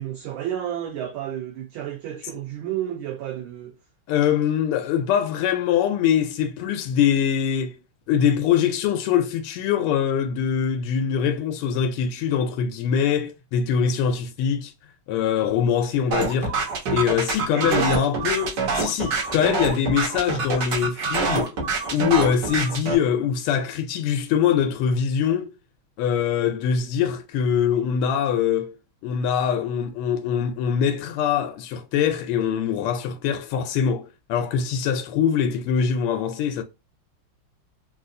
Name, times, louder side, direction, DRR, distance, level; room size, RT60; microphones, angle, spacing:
voice 1, 0.0-3.7 17.5-17.9, right 11 dB, 75° right, 1.3 m, -31 dB
voice 2, 4.1-7.8 8.1-14.7 15.1-16.5 16.9-21.6 21.9-25.5 26.0-28.8 29.0-36.6, left 8 dB, 85° left, 1.5 m, -23 dB
sound 1, 16.1-22.9, right 4 dB, 55° right, 1.3 m, -25 dB
3.9 x 2.4 x 2.5 m
omnidirectional pair, 2.4 m